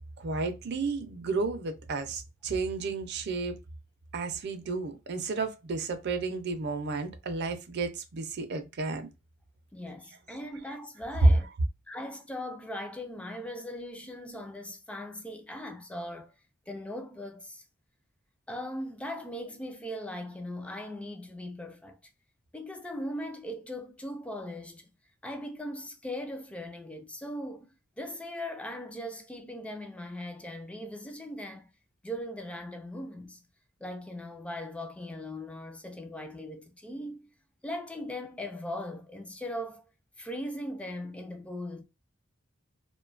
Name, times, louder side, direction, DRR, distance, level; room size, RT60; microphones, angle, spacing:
voice 1, 0.2-3.6 4.1-9.1, right 4 dB, 55° right, 0.5 m, -33 dB
voice 2, 9.7-11.5 11.9-16.3 16.7-17.6 18.5-22.0 22.5-24.9 25.2-27.7 28.0-31.7 32.0-33.4 33.8-37.3 37.6-39.8 40.2-41.8, left 1 dB, 5° left, 0.3 m, -39 dB
2.6 x 2.2 x 2.4 m
head